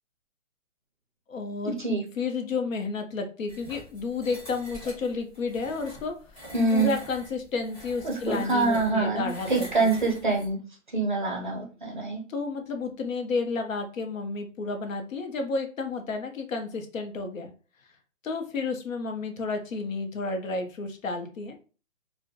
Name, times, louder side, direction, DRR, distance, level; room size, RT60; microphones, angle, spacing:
voice 1, 1.3-1.7 2.2-6.1 6.7-9.9 12.3-17.5 18.2-21.6, left 4 dB, 75° left, 5 dB, 0.7 m, -31 dB
sound 1, 3.5-10.5, equal, 25° left, 1.0 m, -45 dB
voice 2, 6.5-6.9 8.0-10.6 10.9-12.2, right 3 dB, 40° right, 0 dB, 0.5 m, -25 dB
2.5 x 2.1 x 2.6 m, 0.36 s
hypercardioid pair, 175°, 40 cm